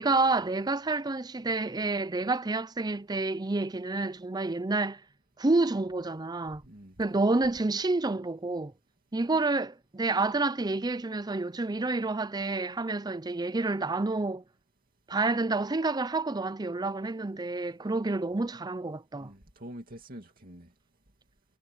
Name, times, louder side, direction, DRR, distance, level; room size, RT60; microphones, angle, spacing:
voice 1, 0.0-5.0 5.4-6.6 7.0-8.7 9.1-14.4 15.1-19.3, right 3 dB, 20° right, 0.6 m, -29 dB
voice 2, 6.6-7.2 19.2-20.7, equal, 45° right, 2.5 m, -46 dB
head